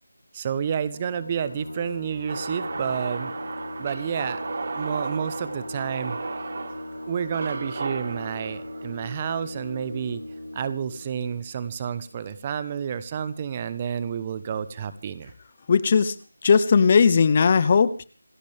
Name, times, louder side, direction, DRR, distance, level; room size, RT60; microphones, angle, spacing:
voice 1, 0.3-3.3 3.8-4.4 4.7-6.2 7.1-10.2 10.5-15.3, right 7 dB, 20° right, 15 dB, 0.9 m, -30 dB
sound 1, 0.9-12.2, left 1 dB, 85° left, 3.9 m, -39 dB
sound 2, 2.3-10.4, right 4 dB, 45° right, 1.5 m, -35 dB
voice 2, 15.7-16.1 16.4-18.0, left 5 dB, 30° left, 16 dB, 0.9 m, -18 dB
27.0 x 13.0 x 3.5 m, 0.36 s
figure-of-eight pair, 165°, 0 cm